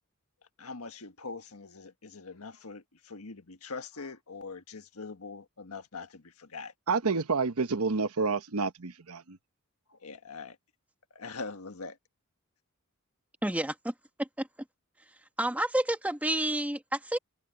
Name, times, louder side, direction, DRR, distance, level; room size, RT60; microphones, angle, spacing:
voice 1, 0.6-6.7 9.9-10.6 11.1-12.0, left 4 dB, 75° left, 1.6 m, -43 dB
voice 2, 6.9-9.4, right 4 dB, 80° right, 1.1 m, -29 dB
voice 3, 13.4-13.9 14.2-14.5 15.4-17.2, right 1 dB, 5° right, 1.4 m, -29 dB
head